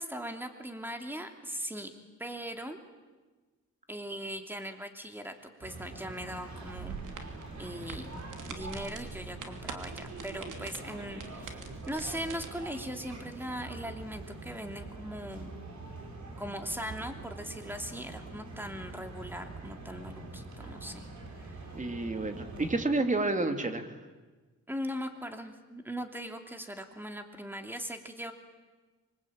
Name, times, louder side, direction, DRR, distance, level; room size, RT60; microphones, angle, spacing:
voice 1, 0.0-1.9 2.2-2.8 3.9-6.9 7.6-8.2 8.5-11.6 11.9-15.6 16.4-21.1 21.4-21.6 24.7-28.3, equal, 5° right, 5 dB, 2.9 m, -40 dB
sound 1, 5.6-22.8, right 3 dB, 70° right, 5.3 m, -44 dB
sound 2, 6.6-12.5, right 5 dB, 90° right, 3.0 m, -45 dB
voice 2, 21.7-24.0, right 2 dB, 25° right, 7 dB, 2.7 m, -30 dB
25.5 x 24.0 x 8.9 m, 1.3 s
cardioid pair, 105°, 30 cm